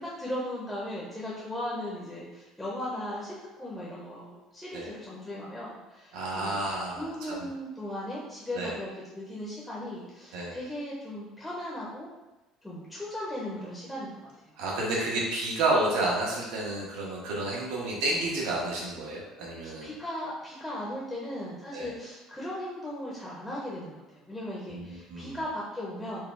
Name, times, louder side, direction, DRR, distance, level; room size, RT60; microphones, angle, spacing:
voice 1, 0.0-6.6 7.0-12.1 12.6-14.6 19.6-26.2, left 1 dB, 5° left, -6 dB, 0.7 m, -37 dB
voice 2, 6.1-7.5 8.5-8.8 10.3-10.6 14.6-19.9 21.7-21.9 24.7-25.4, right 2 dB, 75° right, -4 dB, 1.1 m, -30 dB
4.5 x 2.3 x 3.7 m, 1.0 s
cardioid pair, 170°, 0 cm